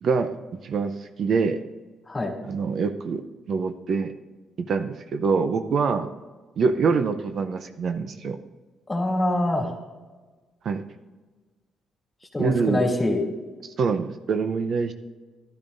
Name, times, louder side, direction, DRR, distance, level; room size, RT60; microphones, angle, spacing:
voice 1, 0.0-0.4 0.6-1.6 2.4-4.1 4.6-6.1 6.6-8.4 10.6-10.8 12.4-12.8 13.6-14.9, right 5 dB, 60° right, 9 dB, 0.6 m, -25 dB
voice 2, 8.9-9.7 12.3-13.2, left 1 dB, 20° left, -1 dB, 2.7 m, -24 dB
12.5 x 12.0 x 2.6 m, 1.3 s
cardioid pair, 90°, 0 cm